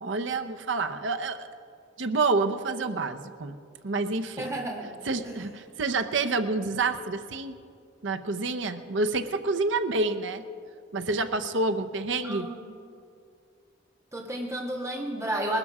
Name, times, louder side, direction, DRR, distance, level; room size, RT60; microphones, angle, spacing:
voice 1, 0.0-1.5 2.0-3.6 3.8-4.5 5.1-7.6 8.0-10.4 10.9-12.5, right 3 dB, 70° right, 8 dB, 0.7 m, -28 dB
voice 2, 4.4-5.0 5.2-5.4 12.2-12.7 14.1-15.6, right 1 dB, 15° right, 0 dB, 1.7 m, -32 dB
19.0 x 12.5 x 4.9 m, 2.3 s
head